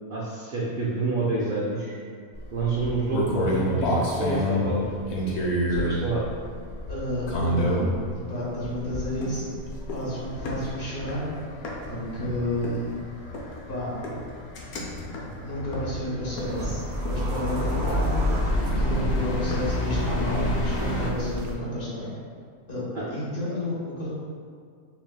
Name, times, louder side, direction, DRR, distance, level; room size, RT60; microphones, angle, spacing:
voice 1, 0.1-1.9 2.5-6.2 22.9-23.1 23.5-23.6, right 3 dB, 65° right, -6 dB, 0.5 m, -28 dB
sound 1, 2.3-8.1 8.6-9.2 9.5-21.1, left 1 dB, 60° left, 0.7 m, -30 dB
voice 2, 6.9-7.8 8.3-9.5 9.9-11.2 11.9-12.9 13.7-13.9 15.4-18.1 18.8-22.1 22.7-22.8 23.1-24.1, left 1 dB, 45° left, -7 dB, 1.0 m, -31 dB
sound 2, 9.2-10.2 10.4-12.0 12.6-12.9 13.3-13.6 14.0-14.3 14.8-15.4 15.7-16.0 16.4-16.8 17.1-17.3 17.6-19.9 20.2-20.6, left 2 dB, 85° left, 1.1 m, -38 dB
sound 3, 16.4-21.6, equal, 80° right, 1.0 m, -30 dB
5.9 x 2.6 x 2.2 m, 2.1 s
omnidirectional pair, 1.5 m